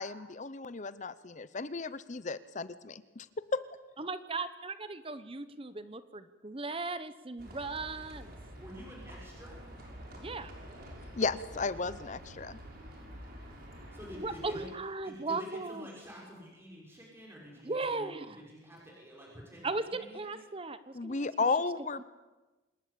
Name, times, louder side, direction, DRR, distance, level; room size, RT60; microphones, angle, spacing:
voice 1, 0.0-2.9 3.5-3.6 11.2-12.6 20.9-22.0, left 4 dB, 40° left, 15 dB, 0.7 m, -34 dB
voice 2, 4.0-8.3 10.2-10.5 14.2-15.9 17.6-18.4 19.6-21.3, right 3 dB, 30° right, 12 dB, 1.0 m, -37 dB
Livestock farm animals working animals, 7.4-14.7, equal, 50° right, 6.4 m, -48 dB
voice 3, 8.6-9.6 13.9-14.7 15.0-20.4, left 1 dB, 10° right, -3 dB, 6.3 m, -48 dB
26.5 x 20.0 x 8.5 m, 1.2 s
head